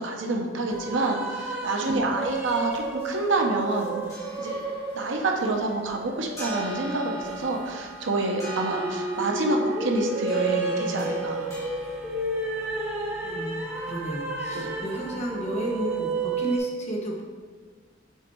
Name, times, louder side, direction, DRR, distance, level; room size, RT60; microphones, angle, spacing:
voice 1, 0.0-3.9 4.4-4.6 4.9-11.5 14.5-14.7, right 2 dB, 75° right, 2 dB, 0.8 m, -27 dB
sound 1, 0.7-16.6, right 3 dB, 10° right, 0.7 m, -32 dB
voice 2, 1.8-2.2 13.2-17.2, right 1 dB, 35° left, -1 dB, 0.9 m, -33 dB
sound 2, 3.7-16.4, right 1 dB, 15° left, 1.6 m, -43 dB
5.6 x 4.1 x 4.6 m, 1.5 s
head